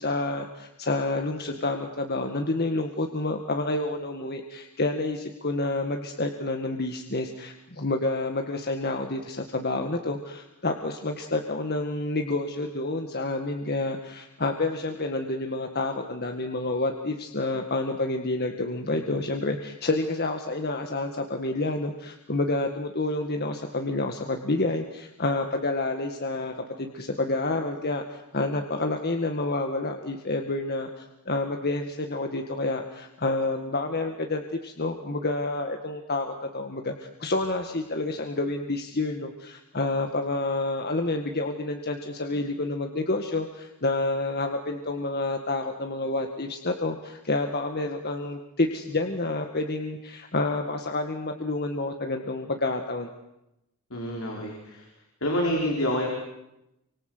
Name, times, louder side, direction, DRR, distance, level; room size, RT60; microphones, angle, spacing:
voice 1, 0.0-53.1, left 2 dB, 45° left, 4 dB, 1.9 m, -29 dB
voice 2, 53.9-54.9 55.2-56.1, equal, 65° left, 0 dB, 5.0 m, -27 dB
28.5 x 25.5 x 8.0 m, 0.88 s
head